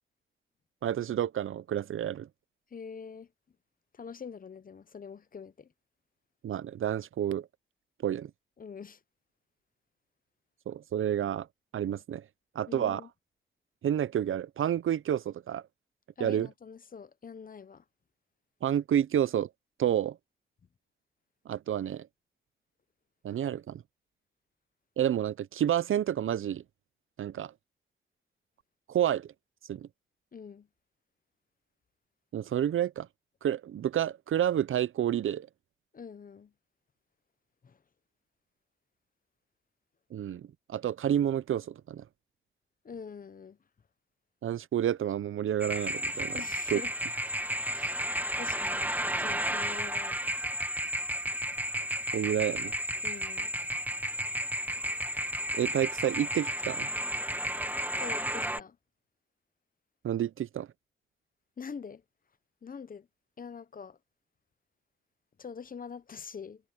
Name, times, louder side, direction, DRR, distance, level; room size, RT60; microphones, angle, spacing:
voice 1, 0.8-2.3 6.4-7.5 8.0-8.3 10.7-11.5 11.7-12.2 12.6-13.0 13.8-15.6 16.2-16.5 18.6-19.5 19.8-20.2 21.5-22.1 23.2-23.8 25.0-26.6 27.2-27.5 28.9-29.3 29.7-29.9 32.3-33.1 33.4-35.5 40.1-42.0 44.4-46.8 52.1-52.7 55.5-56.9 60.0-60.7, right 10 dB, 75° right, 0.4 m, -29 dB
voice 2, 2.7-3.3 4.0-5.7 8.6-9.0 12.7-13.1 16.2-17.8 30.3-30.7 35.9-36.5 42.8-43.6 46.3-46.9 47.7-48.0 48.4-50.2 53.0-53.5 58.0-58.8 61.6-62.0 62.6-63.1 63.4-64.0 65.4-66.6, left 6 dB, 45° left, 0.7 m, -44 dB
sound 1, 45.6-58.6, right 1 dB, 10° right, 0.6 m, -32 dB
wide cardioid pair, 155°, 21 cm